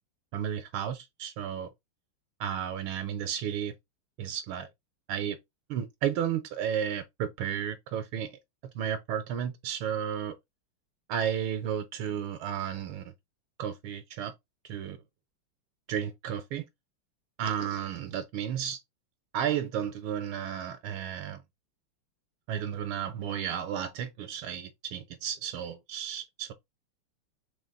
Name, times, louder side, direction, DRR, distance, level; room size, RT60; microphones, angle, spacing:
voice 1, 0.3-1.7 2.4-3.7 4.2-4.7 5.1-5.4 5.7-8.4 8.7-10.3 11.1-13.1 13.6-14.3 14.7-15.0 15.9-16.7 17.4-18.8 19.3-21.4 22.5-26.5, right 9 dB, 75° right, 1.5 m, -33 dB
4.0 x 3.3 x 3.7 m
omnidirectional pair, 2.4 m